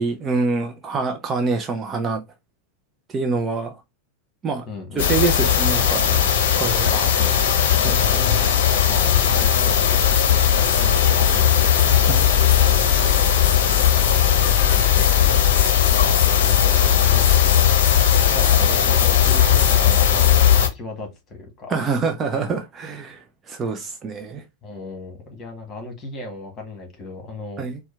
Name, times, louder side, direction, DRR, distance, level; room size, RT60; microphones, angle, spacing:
voice 1, 0.0-2.2 3.1-3.8 4.4-4.7 5.0-6.2 6.5-7.0 7.9-8.0 12.1-12.3 21.7-24.4 27.6-27.8, right 4 dB, 25° right, 0.6 m, -25 dB
voice 2, 4.7-5.1 6.9-8.5 8.9-12.5 14.4-17.3 17.8-21.7 24.6-27.6, left 2 dB, 25° left, 1.7 m, -36 dB
sound 1, 5.0-20.7, left 9 dB, 55° left, 0.8 m, -17 dB
4.4 x 2.2 x 3.3 m
figure-of-eight pair, 90°, 0 cm